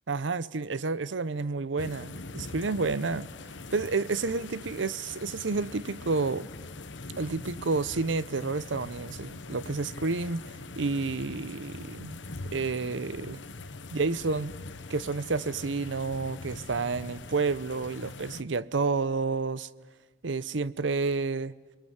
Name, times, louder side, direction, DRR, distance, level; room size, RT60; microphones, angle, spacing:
voice 1, 0.1-3.3 3.7-6.5 7.2-10.4 10.8-12.2 12.5-13.4 13.9-14.5 14.9-19.7 20.2-21.5, right 4 dB, 90° right, 0.8 m, -30 dB
sound 1, 1.8-18.4, left 3 dB, 85° left, 1.2 m, -43 dB
29.0 x 22.0 x 8.0 m
head